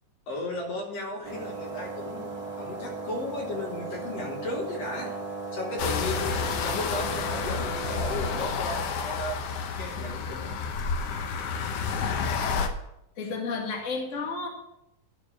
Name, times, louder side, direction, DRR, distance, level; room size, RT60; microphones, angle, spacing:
voice 1, 0.3-5.1 5.5-9.4 9.8-10.6 11.0-11.1, left 2 dB, 60° left, 0 dB, 2.2 m, -35 dB
sound 1, 1.2-8.5, right 4 dB, 35° right, 2.8 m, -37 dB
sound 2, 5.8-12.7, left 5 dB, 75° left, 1.4 m, -30 dB
voice 2, 13.1-14.5, left 4 dB, 30° left, 0 dB, 1.5 m, -32 dB
12.0 x 4.6 x 6.9 m, 0.84 s
omnidirectional pair, 3.7 m